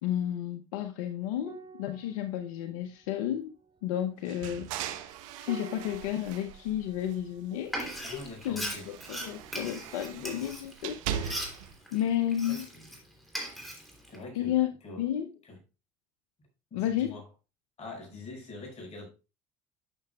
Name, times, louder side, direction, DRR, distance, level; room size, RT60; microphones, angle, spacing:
voice 1, 0.0-3.5 3.8-5.1 5.4-8.8 9.1-11.5 11.9-12.7 14.3-14.7 15.0-15.3 16.7-17.2, left 11 dB, 80° left, 0.7 m, -32 dB
sound 1, 1.4-10.1 10.4-10.6, right 5 dB, 30° right, 0.8 m, -52 dB
sound 2, 4.3-7.4 7.8-11.8, right 9 dB, 75° right, 0.9 m, -40 dB
Frying (food), 7.7-13.0 13.3-14.2, right 1 dB, ahead, 3.1 m, -39 dB
voice 2, 8.0-8.9 10.1-10.5 12.4-12.9 14.1-15.1 15.4-15.6 16.7-17.2 17.8-19.1, left 2 dB, 40° left, 5.6 m, -44 dB
12.0 x 6.8 x 2.3 m
hypercardioid pair, 85°, 17 cm